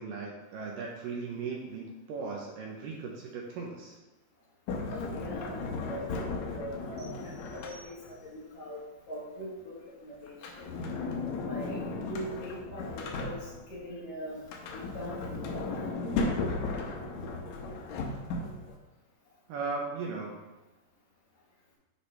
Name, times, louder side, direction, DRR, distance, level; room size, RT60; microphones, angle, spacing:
voice 1, 0.0-4.0 19.5-20.5, right 4 dB, 75° right, -1 dB, 2.2 m, -37 dB
Sliding door, 4.7-8.2 10.3-13.8 14.4-18.7, left 3 dB, 80° left, 1.6 m, -35 dB
voice 2, 4.9-5.6 5.9-10.6 11.4-11.8 12.1-14.4 14.7-15.6, equal, 55° left, -5 dB, 2.4 m, -41 dB
sound 1, 7.0-8.5, right 2 dB, 60° right, 1.5 m, -57 dB
9.9 x 4.9 x 3.3 m, 1.1 s
omnidirectional pair, 4.4 m